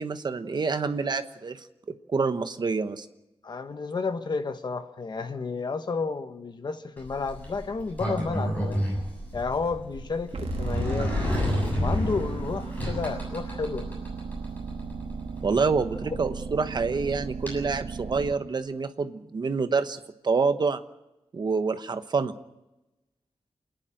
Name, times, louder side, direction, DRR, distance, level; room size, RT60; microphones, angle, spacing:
voice 1, 0.0-1.6 2.1-3.1 15.4-20.0 20.2-20.8 21.3-22.3, right 4 dB, 50° right, 1.1 m, -27 dB
voice 2, 3.4-8.9 9.3-11.1 11.8-13.9 16.1-16.2, left 4 dB, 50° left, 1.2 m, -31 dB
Sliding door, 7.0-17.5, left 1 dB, 15° left, 7.4 m, -32 dB
sound 1, 10.3-18.3, right 5 dB, 80° right, 1.6 m, -36 dB
28.0 x 10.5 x 9.1 m
wide cardioid pair, 175°, 10 cm